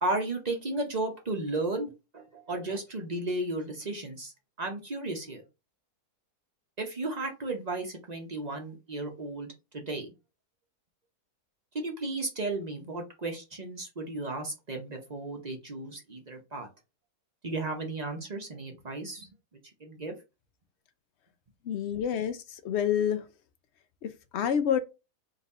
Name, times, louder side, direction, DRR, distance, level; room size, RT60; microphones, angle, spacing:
voice 1, 0.0-5.4 6.8-9.5 9.7-10.1 11.8-16.7 17.4-19.3 19.8-20.1, right 2 dB, 40° right, 0.6 m, -34 dB
voice 2, 21.7-23.2 24.0-24.8, left 8 dB, 80° left, 0.6 m, -28 dB
4.0 x 2.6 x 4.0 m
omnidirectional pair, 1.7 m